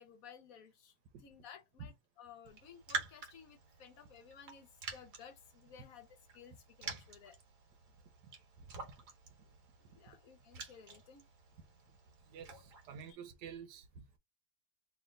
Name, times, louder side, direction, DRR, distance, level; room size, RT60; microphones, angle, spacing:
voice 1, 0.0-0.9 1.2-6.1 6.3-7.4 9.9-11.2 13.1-13.2, left 7 dB, 65° left, 1.1 m, -56 dB
Raindrop, 2.4-13.1, right 4 dB, 55° right, 1.5 m, -48 dB
voice 2, 12.3-14.2, right 6 dB, 80° right, 1.4 m, -50 dB
3.3 x 2.8 x 3.7 m
omnidirectional pair, 1.8 m